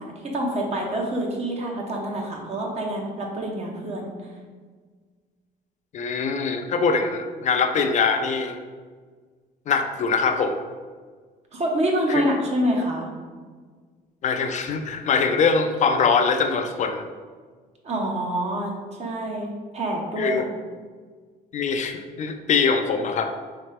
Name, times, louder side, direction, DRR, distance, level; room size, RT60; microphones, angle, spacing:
voice 1, 0.0-4.1 11.5-13.1 17.8-20.5, right 1 dB, 40° right, 0 dB, 0.9 m, -27 dB
voice 2, 5.9-8.6 9.7-10.6 12.1-12.2 14.2-17.1 20.2-20.4 21.5-23.3, left 5 dB, 45° left, 6 dB, 0.4 m, -23 dB
4.2 x 3.1 x 3.4 m, 1.5 s
cardioid pair, 110°, 17 cm